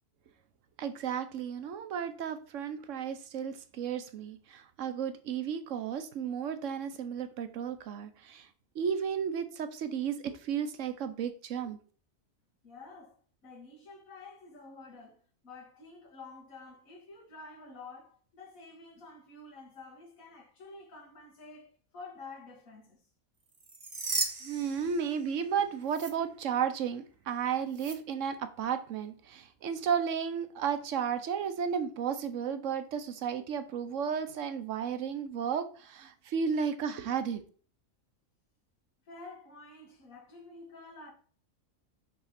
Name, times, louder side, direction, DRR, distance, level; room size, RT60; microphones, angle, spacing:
voice 1, 0.8-8.5 8.7-11.8 24.4-37.4, right 7 dB, 70° right, 1.0 m, -33 dB
voice 2, 12.6-13.2 13.4-23.0 39.1-41.1, left 3 dB, 80° left, 2.1 m, -49 dB
sound 1, 23.5-25.5 25.9-26.1 27.7-28.0, right 3 dB, 30° right, 1.0 m, -36 dB
6.3 x 3.5 x 5.7 m
omnidirectional pair, 1.4 m